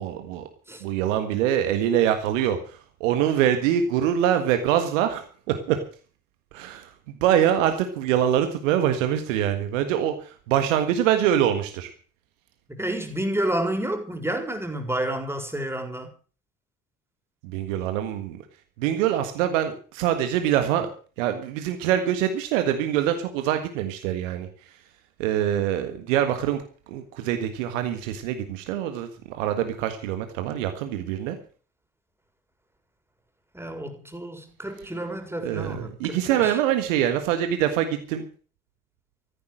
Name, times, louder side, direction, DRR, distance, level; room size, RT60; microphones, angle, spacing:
voice 1, 0.0-0.5 0.8-5.8 6.5-6.9 7.2-11.9 17.4-18.4 18.8-20.9 21.2-24.5 25.2-26.6 26.9-31.4 35.4-38.2, right 10 dB, 70° right, 1.7 m, -24 dB
voice 2, 12.7-16.1 33.5-36.6, right 1 dB, 5° right, 4.4 m, -30 dB
14.0 x 11.0 x 7.6 m
figure-of-eight pair, 55°, 39 cm